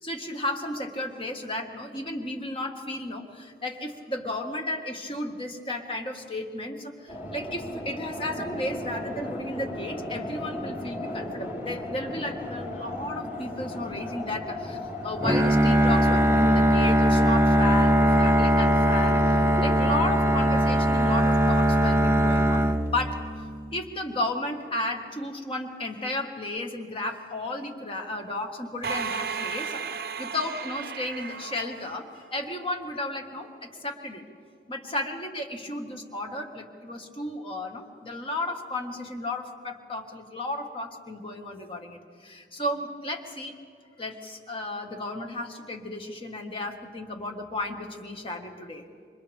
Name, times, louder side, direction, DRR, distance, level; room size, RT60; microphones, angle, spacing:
voice 1, 0.0-23.2 23.7-34.2 34.7-43.5 44.0-48.8, left 1 dB, 30° left, 3 dB, 1.7 m, -33 dB
sound 1, 7.1-21.1, left 1 dB, 50° left, 7.2 m, -36 dB
Bowed string instrument, 15.2-23.4, equal, 15° right, 0.9 m, -21 dB
sound 2, 28.8-32.5, right 6 dB, 60° right, 0.8 m, -34 dB
28.5 x 26.0 x 3.5 m, 2.2 s
head